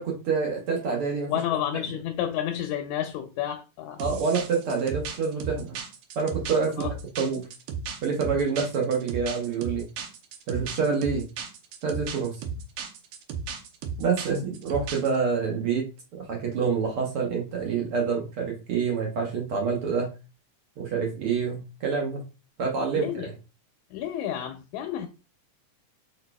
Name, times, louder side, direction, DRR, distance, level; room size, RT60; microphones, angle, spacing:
voice 1, 0.0-1.3 4.0-5.8 6.1-7.5 8.0-9.9 10.5-11.3 11.8-12.3 14.0-20.1 20.8-22.2 22.6-23.3, right 5 dB, 60° right, 1.5 m, -27 dB
voice 2, 1.3-4.0 6.8-6.9 23.0-23.3 23.9-25.1, left 10 dB, 80° left, 1.9 m, -30 dB
sound 1, 4.0-15.2, right 5 dB, 80° right, 2.2 m, -35 dB
4.6 x 4.5 x 2.2 m
omnidirectional pair, 3.6 m